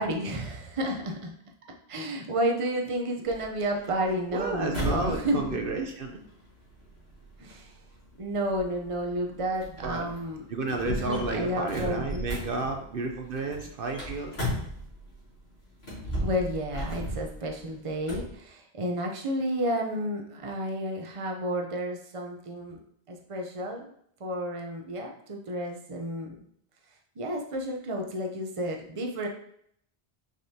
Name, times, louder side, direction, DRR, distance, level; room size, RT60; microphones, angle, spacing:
voice 1, 0.0-1.3 1.9-5.6 7.4-7.7 8.2-10.4 10.9-12.2 16.2-22.8 23.1-23.9 24.2-26.4 27.2-29.3, equal, 35° right, 1 dB, 0.8 m, -31 dB
sound 1, 3.3-15.2 15.7-18.3, equal, 80° left, 2.7 m, -36 dB
voice 2, 4.3-6.2 9.8-10.1 10.5-14.3, right 3 dB, 60° right, 3 dB, 0.9 m, -31 dB
6.4 x 5.2 x 2.8 m, 0.68 s
omnidirectional pair, 1.0 m